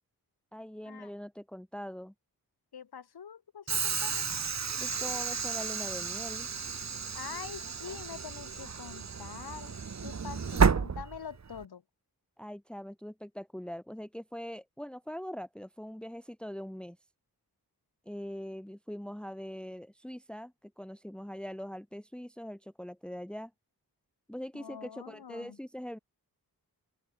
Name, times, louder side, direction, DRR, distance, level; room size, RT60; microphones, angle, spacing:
voice 1, 0.5-2.1 4.8-6.5 12.4-17.0 18.0-23.5 24.3-26.0, equal, ahead, 1.3 m, -42 dB
voice 2, 2.7-4.3 7.1-9.7 10.0-11.8 24.5-25.6, left 7 dB, 75° left, 1.7 m, -45 dB
Train / Sliding door, 3.7-11.6, right 5 dB, 45° right, 1.2 m, -32 dB
open air
wide cardioid pair, 90°, 38 cm